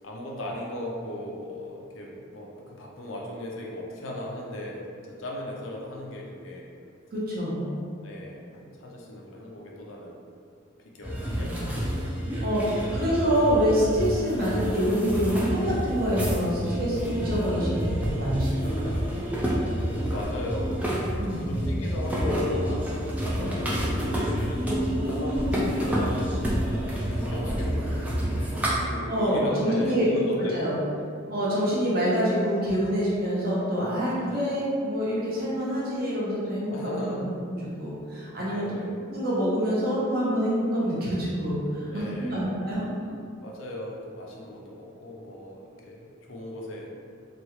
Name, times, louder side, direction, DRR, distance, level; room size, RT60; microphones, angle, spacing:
voice 1, 0.0-6.7 7.6-10.3 10.8-13.0 19.8-24.6 25.1-26.7 27.1-30.9 31.6-31.8 34.2-34.4 36.7-37.3 38.5-38.9 41.9-42.6 43.4-46.9, left 1 dB, 80° left, -2 dB, 0.5 m, -37 dB
voice 2, 7.1-7.6 11.3-11.6 12.4-19.0 21.2-21.5 29.1-30.1 30.5-30.7 31.3-38.7 39.1-42.9, equal, 50° right, -8 dB, 0.8 m, -26 dB
sound 1, 11.0-28.7, equal, 5° right, 0.3 m, -28 dB
3.0 x 2.3 x 3.0 m, 2.3 s
head